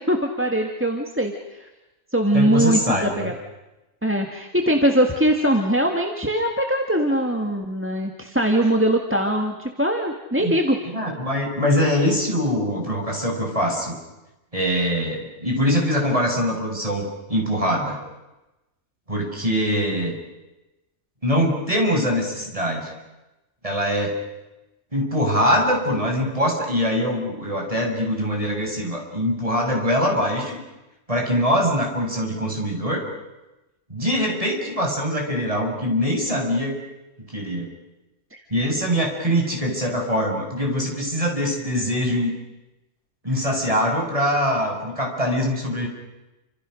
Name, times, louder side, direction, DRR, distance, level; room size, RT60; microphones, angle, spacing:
voice 1, 0.1-1.3 1.6-1.7 2.1-3.3 4.0-10.8 38.3-38.4, right 1 dB, 10° right, 3 dB, 1.8 m, -21 dB
voice 2, 2.3-3.3 10.4-10.5 10.9-13.9 14.5-18.0 19.1-20.1 21.2-22.9 23.6-24.2 24.9-30.6 31.1-33.0 33.9-36.7 37.3-37.7 38.5-42.3 43.2-45.9, equal, 25° right, 1 dB, 6.2 m, -23 dB
29.0 x 26.5 x 6.4 m, 1.0 s
omnidirectional pair, 1.4 m